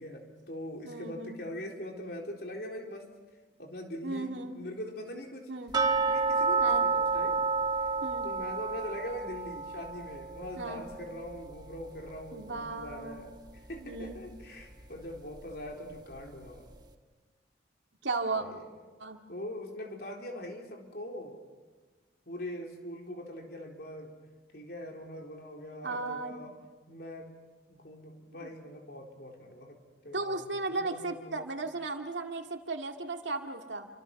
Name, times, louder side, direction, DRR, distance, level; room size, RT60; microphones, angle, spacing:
voice 1, 0.0-3.1 3.6-5.5 6.1-7.5 8.2-13.3 13.7-16.7 18.3-18.7 19.3-21.4 22.3-24.1 24.5-26.6 26.9-27.3 27.7-29.8 30.0-31.5, left 1 dB, 60° left, 1 dB, 4.0 m, -42 dB
voice 2, 0.8-1.4 4.0-4.6 5.5-5.7 6.6-6.9 8.0-8.3 10.6-10.8 12.3-13.3 13.8-14.2 18.0-18.4 19.0-19.2 25.8-26.3 28.4-28.5 30.1-33.9, right 3 dB, 85° right, 4 dB, 2.2 m, -35 dB
sound 1, 5.7-12.6 12.9-13.0 13.5-13.6 14.1-14.2, right 4 dB, 25° right, 1.4 m, -30 dB
29.0 x 25.5 x 6.0 m, 1.3 s
head